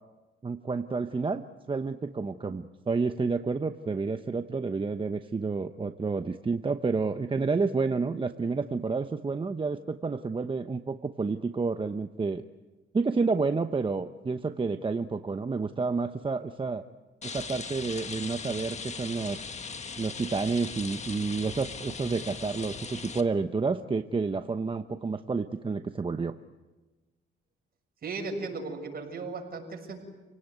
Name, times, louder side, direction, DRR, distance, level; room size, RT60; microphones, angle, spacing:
voice 1, 0.4-1.4 1.7-12.4 12.9-16.8 17.2-19.4 20.0-26.3, right 4 dB, 25° right, 8 dB, 1.0 m, -30 dB
Rain, 17.2-23.2, left 5 dB, 35° left, 1.6 m, -39 dB
voice 2, 28.0-30.0, right 3 dB, 50° right, 3 dB, 6.7 m, -36 dB
29.5 x 18.0 x 9.4 m, 1.2 s
cardioid pair, 90°, 20 cm